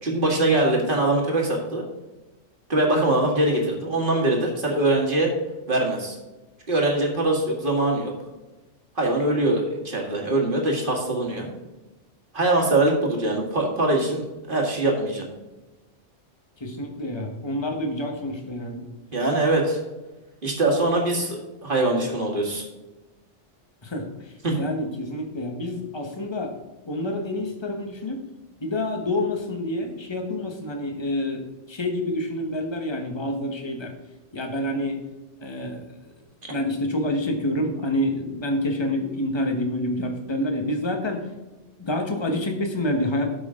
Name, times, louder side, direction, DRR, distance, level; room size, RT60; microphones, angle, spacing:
voice 1, 0.0-1.8 2.7-5.3 5.7-6.2 6.7-8.1 9.0-11.5 12.3-15.3 19.1-19.8 20.4-22.6 24.4-24.6, right 2 dB, 45° right, 0 dB, 2.1 m, -22 dB
voice 2, 16.6-18.9 23.8-26.5 26.8-28.2 28.6-33.9 34.3-35.0 35.4-35.9 36.5-41.3 41.8-43.3, left 1 dB, 25° left, 3 dB, 1.2 m, -28 dB
12.5 x 6.0 x 3.8 m, 1.1 s
omnidirectional pair, 1.2 m